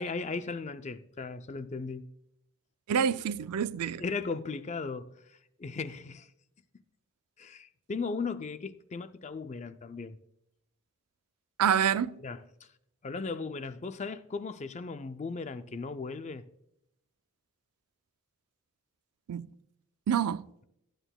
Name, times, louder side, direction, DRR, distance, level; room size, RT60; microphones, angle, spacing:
voice 1, 0.0-2.1 3.8-6.3 7.4-10.2 12.2-12.7 13.0-16.4, left 4 dB, 30° left, 0.4 m, -37 dB
voice 2, 2.9-4.0 11.6-12.2 19.3-19.5 20.1-20.5, right 8 dB, 90° right, 0.4 m, -27 dB
14.5 x 8.9 x 2.2 m
head